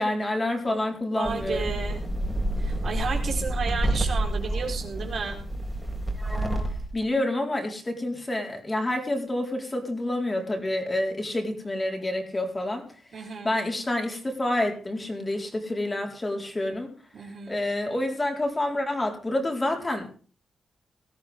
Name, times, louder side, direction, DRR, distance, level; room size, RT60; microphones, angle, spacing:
voice 1, 0.0-1.7 6.9-12.8 13.1-16.9 17.5-20.2, left 1 dB, 25° left, 3 dB, 4.3 m, -28 dB
voice 2, 1.1-2.0 2.6-5.4 13.1-13.5 17.1-17.6, right 5 dB, 60° right, 2 dB, 4.3 m, -32 dB
sound 1, 1.2-7.0, right 1 dB, ahead, 4.2 m, -28 dB
19.0 x 13.0 x 3.7 m, 0.41 s
cardioid pair, 95°, 0 cm